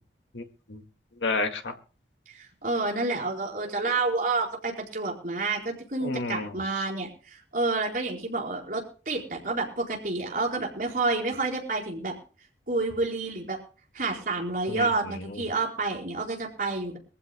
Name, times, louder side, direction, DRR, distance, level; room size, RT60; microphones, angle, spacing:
voice 1, 0.3-0.8 1.2-1.8 6.0-6.6 14.7-15.4, left 3 dB, 85° left, 5 dB, 2.1 m, -32 dB
voice 2, 2.3-12.2 12.7-13.6 13.9-17.0, right 3 dB, 50° right, -1 dB, 4.5 m, -29 dB
24.0 x 15.0 x 2.2 m, 0.38 s
head